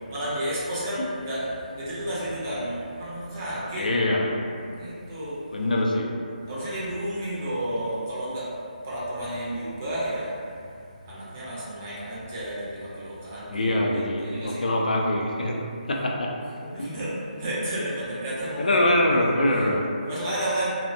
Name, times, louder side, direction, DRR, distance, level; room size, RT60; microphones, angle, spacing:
voice 1, 0.0-3.9 4.7-5.4 6.5-8.5 8.8-10.3 11.0-14.6 16.6-19.7 20.0-20.8, right 1 dB, 20° right, -9 dB, 0.4 m, -32 dB
voice 2, 3.8-4.4 5.5-6.1 13.5-16.4 16.8-16.9 18.6-19.9, left 1 dB, 60° left, 0 dB, 0.3 m, -24 dB
2.5 x 2.0 x 2.6 m, 2.5 s
hypercardioid pair, 175°, 5 cm